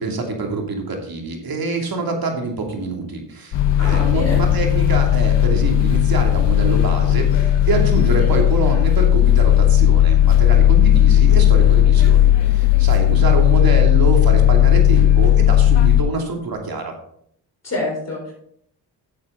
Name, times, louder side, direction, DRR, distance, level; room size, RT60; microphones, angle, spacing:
voice 1, 0.0-16.9, right 3 dB, 55° right, 2 dB, 2.7 m, -25 dB
sound 1, 3.5-16.0, left 11 dB, 75° left, 1.0 m, -15 dB
voice 2, 3.8-4.4 17.6-18.3, left 2 dB, 35° left, -2 dB, 4.0 m, -26 dB
9.8 x 7.5 x 3.8 m, 0.68 s
supercardioid pair, 60°, 43 cm